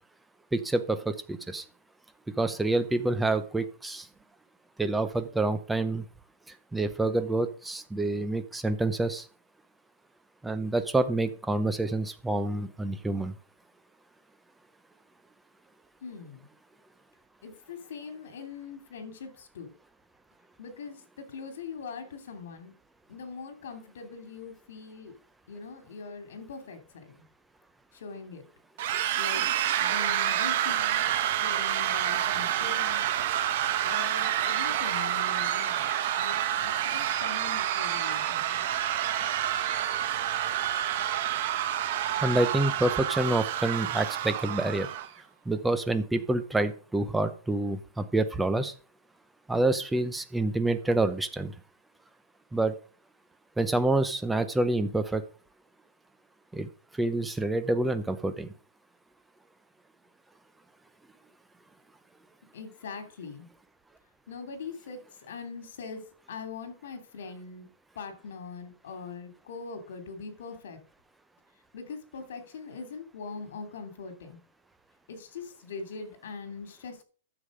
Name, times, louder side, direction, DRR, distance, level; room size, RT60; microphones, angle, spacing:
voice 1, 0.5-1.6 2.4-4.1 4.8-6.0 6.7-9.2 10.4-13.3 42.2-44.9 45.5-48.7 49.5-51.5 52.5-52.7 53.6-55.2 56.5-56.7 57.0-58.5, right 2 dB, 5° right, 10 dB, 0.7 m, -27 dB
voice 2, 16.0-16.5 17.4-19.7 20.6-22.7 23.1-25.1 25.5-27.2 27.9-28.4 29.2-29.5 29.8-31.0 31.3-33.0 33.8-35.9 36.1-38.6 62.5-63.5 64.3-66.0 66.3-67.7 67.9-70.8 71.7-74.4 75.1-77.0, left 5 dB, 70° left, 7 dB, 3.0 m, -42 dB
sound 1, 28.8-45.1, right 11 dB, 45° right, 1.0 m, -28 dB
9.9 x 7.3 x 5.1 m, 0.39 s
supercardioid pair, 170°, 0 cm